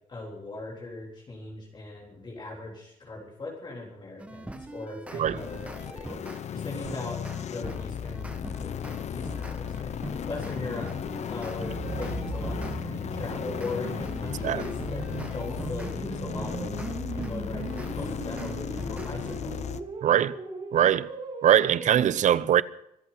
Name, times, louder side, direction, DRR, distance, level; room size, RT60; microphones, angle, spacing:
voice 1, 0.1-6.2 6.5-7.2 7.5-8.3 8.6-8.7 9.1-10.9 11.3-15.0 15.3-16.7 17.1-19.6, left 2 dB, 30° left, 3.8 m, -39 dB
sound 1, 4.2-6.4 6.8-12.8 13.2-16.0 16.4-19.4, right 1 dB, 10° right, 1.5 m, -42 dB
sound 2, 5.4-19.8, left 8 dB, 50° left, 0.9 m, -35 dB
sound 3, 11.1-22.0, right 3 dB, 35° right, 6.8 m, -38 dB
voice 2, 20.0-20.3 20.7-21.1 21.4-22.6, right 10 dB, 55° right, 0.7 m, -21 dB
25.0 x 8.5 x 5.8 m
cardioid pair, 125°, 15 cm